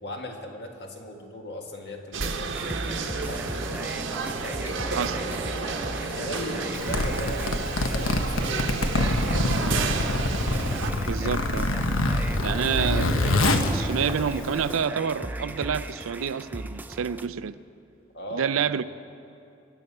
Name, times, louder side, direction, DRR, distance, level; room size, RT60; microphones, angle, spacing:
voice 1, 0.0-3.8 4.4-5.7 6.0-7.5 7.9-9.6 18.1-18.6, left 1 dB, 60° left, 2 dB, 1.6 m, -39 dB
sound 1, 2.1-10.9, right 4 dB, 65° right, 1.0 m, -31 dB
sound 2, 2.5-17.3, right 1 dB, 10° right, 0.4 m, -36 dB
Zipper (clothing), 6.7-14.7, left 2 dB, 85° left, 1.1 m, -25 dB
voice 2, 11.0-11.7 12.4-13.2 13.7-17.6 18.3-18.8, right 7 dB, 85° right, 15 dB, 0.4 m, -28 dB
23.0 x 8.3 x 5.5 m, 2.6 s
head